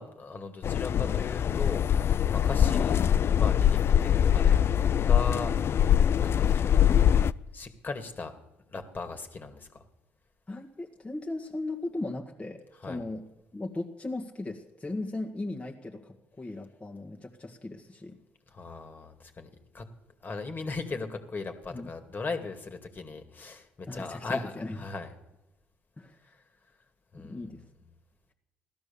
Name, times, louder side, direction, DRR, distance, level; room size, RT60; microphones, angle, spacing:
voice 1, 0.0-3.1 3.3-5.5 6.2-6.8 7.5-8.3 8.7-9.8 12.8-13.0 18.5-19.5 19.7-19.8 20.2-25.1 26.2-26.4 27.1-27.4, left 4 dB, 35° left, 6 dB, 2.3 m, -38 dB
sound 1, 0.6-7.3, left 9 dB, 50° left, 0.4 m, -23 dB
voice 2, 10.5-13.2 13.5-18.2 21.7-21.9 23.9-24.8 26.0-26.2 27.1-27.6, left 2 dB, 20° left, 0 dB, 1.8 m, -37 dB
16.5 x 12.0 x 7.1 m, 0.97 s
supercardioid pair, 60°, 5 cm